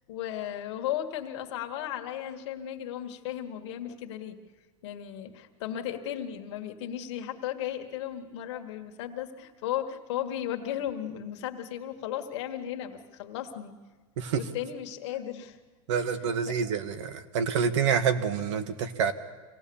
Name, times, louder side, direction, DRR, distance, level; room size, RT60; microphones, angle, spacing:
voice 1, 0.1-4.4 4.8-13.7 14.4-15.6 16.0-16.6, left 11 dB, 55° left, 5 dB, 1.8 m, -35 dB
voice 2, 15.9-19.1, right 7 dB, 65° right, 12 dB, 1.5 m, -27 dB
25.5 x 17.5 x 7.1 m, 1.3 s
supercardioid pair, 160°, 17 cm